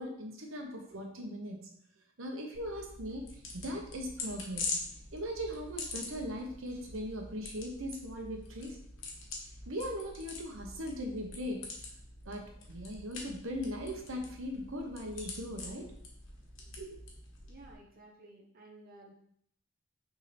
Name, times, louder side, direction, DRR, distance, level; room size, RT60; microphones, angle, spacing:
voice 1, 0.0-1.7 2.2-4.7 5.1-8.8 9.7-11.7 12.2-15.9 16.8-17.0, equal, 80° right, 2 dB, 1.1 m, -39 dB
sound 1, 2.5-17.7, left 3 dB, 65° left, 1.5 m, -44 dB
voice 2, 17.5-19.1, right 2 dB, 45° right, -1 dB, 0.9 m, -54 dB
6.2 x 3.7 x 4.3 m, 0.67 s
head